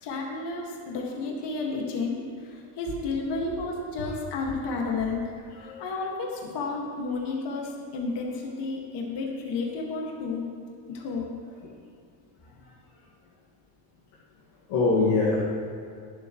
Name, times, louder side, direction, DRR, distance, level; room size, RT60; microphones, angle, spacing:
voice 1, 0.0-2.2 2.5-5.2 5.6-10.5 10.9-11.3, left 3 dB, 60° left, -1 dB, 1.9 m, -31 dB
voice 2, 5.6-5.9 11.6-11.7 14.7-15.4, left 3 dB, 80° left, -6 dB, 2.0 m, -24 dB
22.0 x 7.7 x 3.1 m, 2.4 s
cardioid pair, 135°, 46 cm